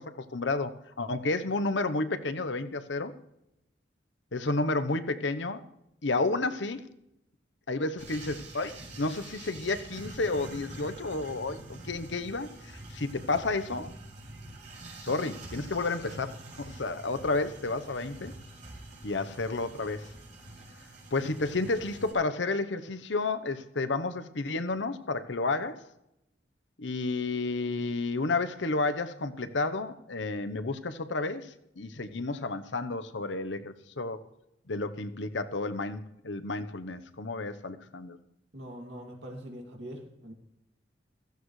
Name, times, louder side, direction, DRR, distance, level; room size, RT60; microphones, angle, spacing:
voice 1, 0.0-3.1 4.3-5.6 6.0-6.8 7.7-13.9 15.0-18.3 19.0-20.1 21.1-25.8 26.8-34.2 34.7-38.2, left 3 dB, 75° left, 11 dB, 0.9 m, -31 dB
sound 1, 8.0-22.1, right 2 dB, 45° right, 6.0 m, -46 dB
voice 2, 38.5-40.3, equal, 65° right, 1 dB, 2.6 m, -43 dB
16.0 x 15.0 x 3.2 m, 0.85 s
head